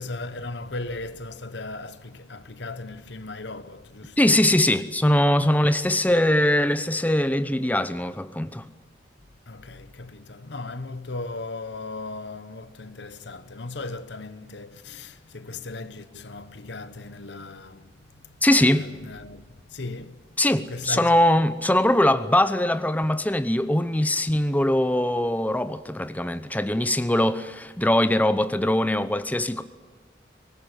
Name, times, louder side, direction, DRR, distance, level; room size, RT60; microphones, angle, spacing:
voice 1, 0.0-4.4 9.5-20.3 20.7-21.1, left 3 dB, 70° left, 1.2 m, -37 dB
voice 2, 4.2-8.6 18.4-18.9 20.4-29.6, left 1 dB, 10° left, 0.8 m, -22 dB
24.0 x 19.5 x 9.2 m
head